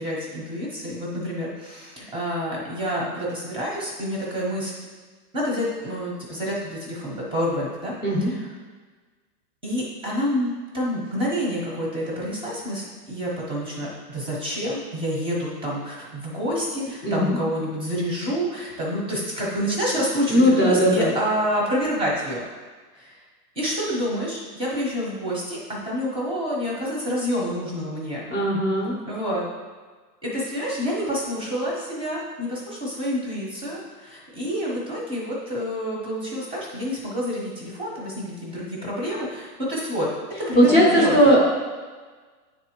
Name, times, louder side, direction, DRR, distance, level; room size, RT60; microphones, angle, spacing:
voice 1, 0.0-4.7 5.3-7.9 8.2-8.5 9.6-22.4 22.9-23.2 23.6-25.6 25.8-28.2 29.1-29.4 30.2-40.1 40.4-41.3, equal, 10° right, -4 dB, 0.8 m, -28 dB
voice 2, 17.0-17.4 20.3-21.1 28.3-28.9 40.6-41.5, equal, 20° left, -3 dB, 0.7 m, -18 dB
9.5 x 3.4 x 3.0 m, 1.4 s
supercardioid pair, 150°, 48 cm